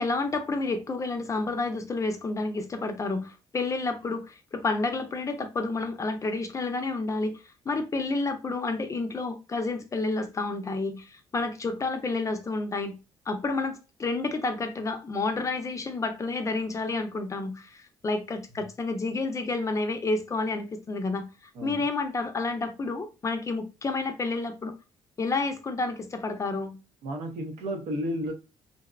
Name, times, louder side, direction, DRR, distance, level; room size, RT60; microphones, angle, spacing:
voice 1, 0.0-13.0 13.3-21.3 21.6-24.7 25.2-26.8, left 3 dB, 30° left, 0.5 m, -30 dB
voice 2, 27.0-28.3, equal, 80° right, 0.7 m, -32 dB
2.6 x 2.0 x 2.3 m
cardioid pair, 90°, 11 cm